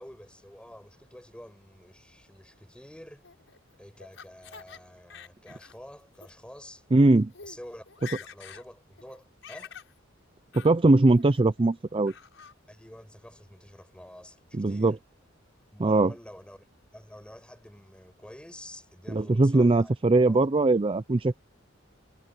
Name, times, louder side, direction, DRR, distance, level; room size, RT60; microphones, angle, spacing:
voice 1, 0.0-3.3 3.8-6.8 7.4-9.8 12.7-15.0 15.7-16.7 16.9-19.9 20.3-20.5, equal, 5° left, 7.1 m, -48 dB
Laughter, 3.2-4.8 5.1-5.8 6.1-6.3 7.0-7.1 7.3-7.6 7.9-8.6 9.0-9.9 10.5-10.7 11.1-11.6 12.1-12.5, left 7 dB, 65° left, 7.5 m, -46 dB
voice 2, 6.9-7.3 10.5-12.1 14.5-15.0 15.8-16.1 19.1-21.3, right 2 dB, 25° right, 0.5 m, -21 dB
head